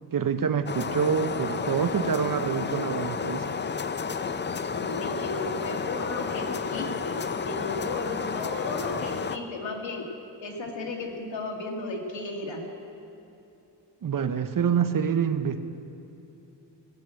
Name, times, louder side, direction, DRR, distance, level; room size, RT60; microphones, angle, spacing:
voice 1, 0.1-3.5 14.0-15.6, right 7 dB, 50° right, 10 dB, 0.7 m, -26 dB
sound 1, 0.7-9.4, left 5 dB, 25° left, 0.4 m, -31 dB
voice 2, 4.7-10.1 10.4-12.6, left 3 dB, 80° left, 1 dB, 2.1 m, -35 dB
17.0 x 7.7 x 7.7 m, 2.9 s
wide cardioid pair, 95°, 44 cm